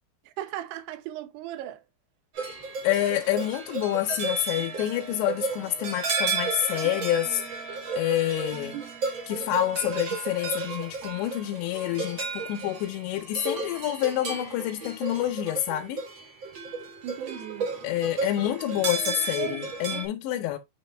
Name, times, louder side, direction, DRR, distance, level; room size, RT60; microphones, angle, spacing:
voice 1, 0.3-1.8 17.0-17.7 19.4-19.6 19.9-20.1, right 13 dB, 75° right, 2.9 m, -36 dB
sound 1, 2.3-20.0, right 4 dB, 60° right, 1.2 m, -33 dB
voice 2, 2.8-7.6 7.9-8.8 9.3-16.0 17.8-20.6, left 13 dB, 85° left, 3.0 m, -28 dB
9.1 x 3.7 x 3.2 m
omnidirectional pair, 5.0 m